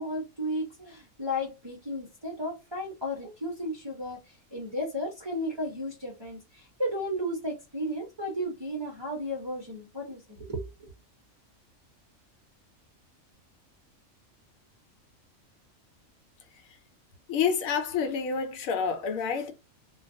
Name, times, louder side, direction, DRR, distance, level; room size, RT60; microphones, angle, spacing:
voice 1, 0.0-10.9, equal, 30° right, 0.5 m, -34 dB
voice 2, 17.3-19.5, left 6 dB, 80° left, 1.0 m, -28 dB
2.3 x 2.2 x 2.5 m
omnidirectional pair, 1.4 m